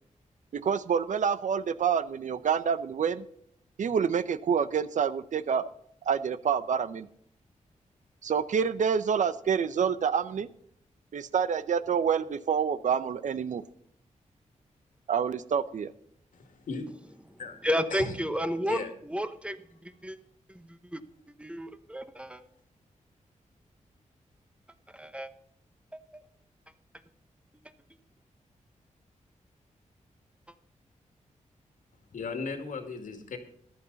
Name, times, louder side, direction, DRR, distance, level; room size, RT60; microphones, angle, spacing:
voice 1, 0.5-3.2 3.8-5.7 6.1-7.1 8.2-10.5 11.1-13.6 15.1-15.9, right 7 dB, 70° right, 15 dB, 0.8 m, -27 dB
voice 2, 16.3-16.9 17.4-17.6 17.9-18.0 18.7-18.9 32.1-33.4, left 5 dB, 80° left, 6 dB, 2.3 m, -36 dB
voice 3, 17.3-20.2 20.5-21.0 21.4-22.4 24.9-25.3 25.9-26.0, equal, 10° right, 10 dB, 1.0 m, -32 dB
14.0 x 11.5 x 4.1 m, 0.68 s
wide cardioid pair, 95°, 13 cm